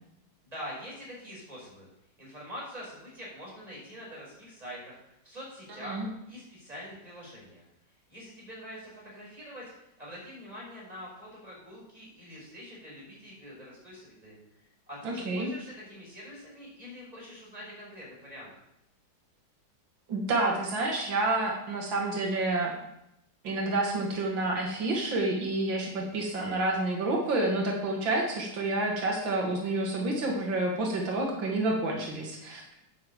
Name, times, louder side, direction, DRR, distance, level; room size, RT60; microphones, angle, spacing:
voice 1, 0.4-1.9 2.2-7.6 8.1-9.7 10.0-14.4 14.9-18.5, equal, 20° right, -5 dB, 5.4 m, -44 dB
voice 2, 15.0-15.5 20.1-22.7 23.4-32.8, right 2 dB, 85° right, 0 dB, 2.4 m, -29 dB
9.6 x 6.1 x 7.3 m, 0.82 s
omnidirectional pair, 2.0 m